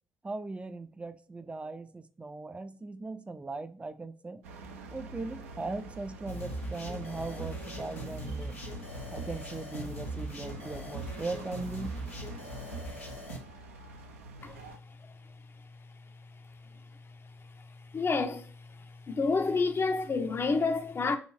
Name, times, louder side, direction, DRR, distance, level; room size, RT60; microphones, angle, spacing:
voice 1, 0.2-4.4 4.9-8.6 9.1-12.0, right 3 dB, 15° right, 0.5 m, -39 dB
sound 1, 4.4-14.8, right 3 dB, 75° right, 0.5 m, -47 dB
sound 2, 6.3-13.4, right 1 dB, 80° left, 0.8 m, -40 dB
voice 2, 17.9-18.5 19.1-21.2, left 4 dB, 30° left, 0.6 m, -28 dB
6.4 x 2.6 x 3.1 m
figure-of-eight pair, 45°, 8 cm